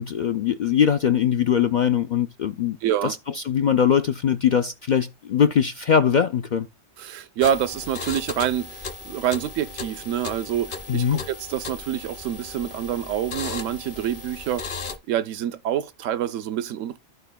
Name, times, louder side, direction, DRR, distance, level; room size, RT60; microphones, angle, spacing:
voice 1, 0.0-2.8 3.0-6.7 10.9-11.2, left 8 dB, 70° left, 0.4 m, -21 dB
voice 2, 2.8-3.1 7.0-14.7 15.1-17.0, right 10 dB, 85° right, 1.0 m, -27 dB
sound 1, 7.4-15.0, left 4 dB, 45° left, 1.0 m, -36 dB
14.5 x 4.9 x 2.2 m
omnidirectional pair, 1.3 m